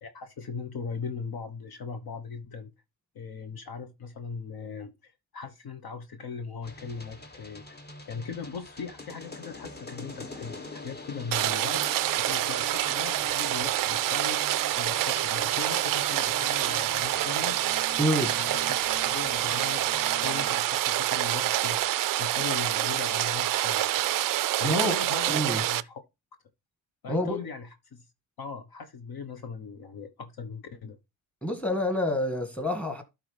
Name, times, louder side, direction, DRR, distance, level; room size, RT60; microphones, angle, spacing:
voice 1, 0.0-2.7 3.1-7.8 8.1-11.9 12.2-14.4 14.8-17.6 18.4-24.1 24.6-25.9 27.0-28.1 28.4-31.0, left 5 dB, 50° left, 1.1 m, -39 dB
sound 1, 6.6-20.5, left 3 dB, 20° left, 1.4 m, -44 dB
Rain, 11.3-25.8, right 14 dB, 50° right, 0.4 m, -27 dB
voice 2, 18.0-18.4 24.6-24.9 25.3-25.6 27.1-27.4 31.4-33.0, left 1 dB, 5° left, 1.8 m, -27 dB
12.0 x 4.0 x 3.3 m
cardioid pair, 80°, 46 cm